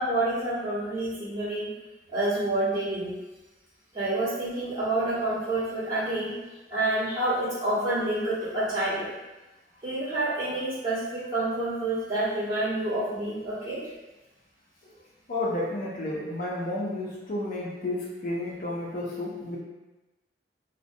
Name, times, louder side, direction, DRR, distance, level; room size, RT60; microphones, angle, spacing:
voice 1, 0.0-1.7 2.1-3.1 3.9-6.3 6.7-9.1 9.8-13.8, right 2 dB, 20° right, -13 dB, 1.2 m, -28 dB
voice 2, 15.3-19.6, left 1 dB, 50° left, -4 dB, 0.4 m, -31 dB
2.4 x 2.1 x 2.6 m, 1.1 s
head